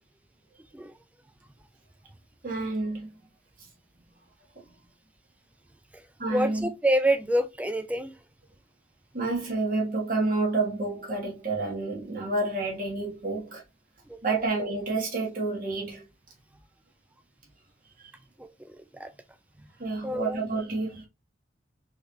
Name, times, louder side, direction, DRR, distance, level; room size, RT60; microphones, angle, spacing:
voice 1, 2.4-3.1 3.6-3.7 6.2-6.7 9.1-13.6 14.2-16.1 18.0-18.1 19.8-21.1, right 3 dB, 45° right, 1.3 m, -29 dB
voice 2, 6.3-8.2 14.1-14.5 18.4-19.1 20.0-20.4, right 1 dB, 10° right, 0.3 m, -28 dB
3.9 x 3.0 x 2.6 m
head